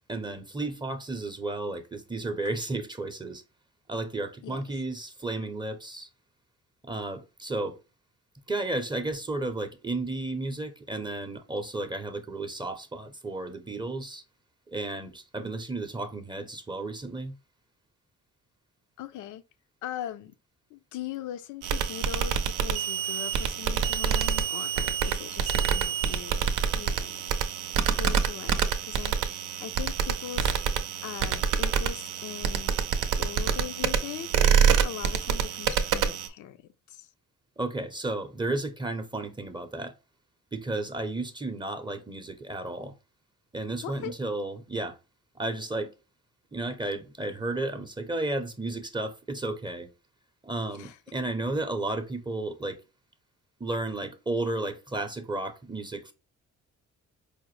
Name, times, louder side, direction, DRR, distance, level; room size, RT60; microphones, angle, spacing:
voice 1, 0.1-3.4 3.9-6.1 6.8-7.8 8.5-14.2 14.7-17.4 37.6-39.9 40.5-42.9 43.5-45.0 45.3-45.9 46.5-49.9 50.4-52.8 53.6-56.1, right 2 dB, 15° right, 0.5 m, -33 dB
voice 2, 19.0-19.4 19.8-20.3 20.7-26.5 26.7-27.2 27.9-30.5 31.0-32.8 33.2-34.5 34.8-36.6 36.9-37.1 43.8-44.1 50.8-51.0, left 11 dB, 75° left, 0.5 m, -40 dB
sound 1, 21.6-36.3, right 7 dB, 85° right, 0.6 m, -27 dB
4.9 x 2.1 x 3.1 m
cardioid pair, 90°, 30 cm